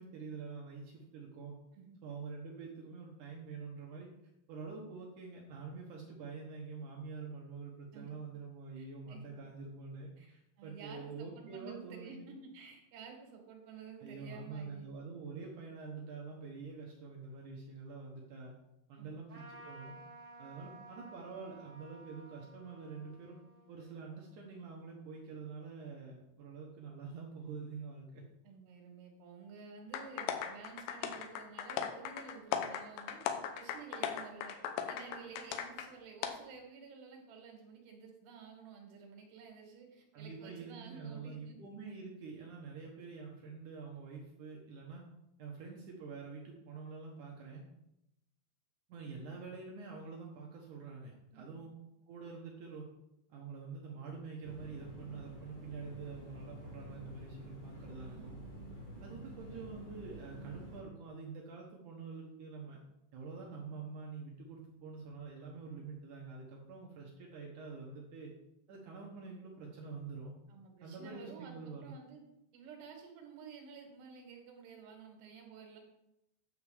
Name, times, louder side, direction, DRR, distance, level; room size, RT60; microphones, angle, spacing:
voice 1, 0.0-1.5 2.0-4.1 4.5-12.2 14.0-18.5 18.9-20.0 20.4-23.4 23.7-28.2 40.1-45.0 45.4-47.6 48.9-51.8 52.1-52.9 53.3-58.4 59.0-62.8 63.1-68.3 68.7-70.3 70.8-71.9, right 4 dB, 90° right, -1 dB, 1.7 m, -46 dB
voice 2, 8.8-9.2 10.2-14.9 18.9-19.2 28.4-33.2 33.5-34.6 34.9-41.6 51.3-51.6 57.9-58.3 70.5-72.2 72.5-75.8, right 5 dB, 70° right, 2 dB, 3.2 m, -52 dB
Trumpet, 19.3-25.1, right 2 dB, 25° right, 1.5 m, -55 dB
Aplausos (SA), 29.9-35.9 36.2-36.3, left 8 dB, 80° left, 2.4 m, -38 dB
sound 1, 54.4-60.8, right 1 dB, 40° left, 2.6 m, -49 dB
9.4 x 4.9 x 7.0 m, 0.87 s
omnidirectional pair, 5.4 m